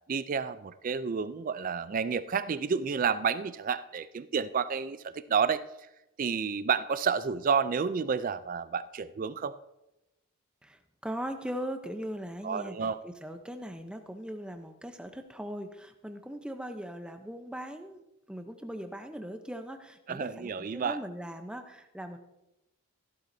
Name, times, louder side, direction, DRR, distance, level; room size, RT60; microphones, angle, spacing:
voice 1, 0.1-5.6 6.2-9.5 12.4-13.0 20.1-21.0, right 6 dB, 35° right, 14 dB, 0.3 m, -30 dB
voice 2, 10.6-22.2, equal, 5° right, 6 dB, 0.7 m, -40 dB
15.0 x 11.5 x 2.7 m, 0.94 s
head